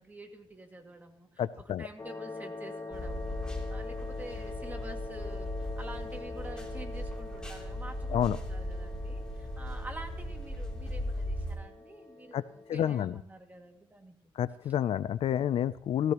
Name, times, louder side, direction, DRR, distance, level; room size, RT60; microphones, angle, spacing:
voice 1, 0.0-3.4 3.7-14.2 14.6-14.7, right 2 dB, 15° right, 3 dB, 2.1 m, -48 dB
voice 2, 1.4-1.9 8.1-8.4 12.3-12.4 12.7-13.1 14.4-16.1, left 10 dB, 70° left, 16 dB, 0.4 m, -29 dB
sound 1, 2.0-12.8, left 3 dB, 35° left, 4.2 m, -44 dB
sound 2, 2.9-11.6, left 1 dB, 10° left, 3.1 m, -37 dB
16.0 x 15.5 x 3.0 m, 0.65 s
cardioid pair, 95°, 10 cm